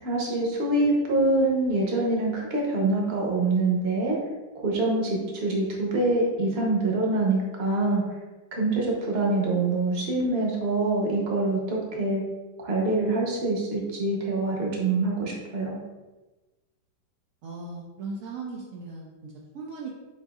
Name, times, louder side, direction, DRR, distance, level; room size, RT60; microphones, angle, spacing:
voice 1, 0.0-4.2 4.6-8.0 8.6-12.2 12.6-15.8, right 2 dB, 45° right, -2 dB, 1.0 m, -25 dB
voice 2, 17.4-19.9, right 3 dB, 75° right, -2 dB, 0.7 m, -38 dB
7.8 x 2.6 x 2.4 m, 1.2 s
omnidirectional pair, 2.0 m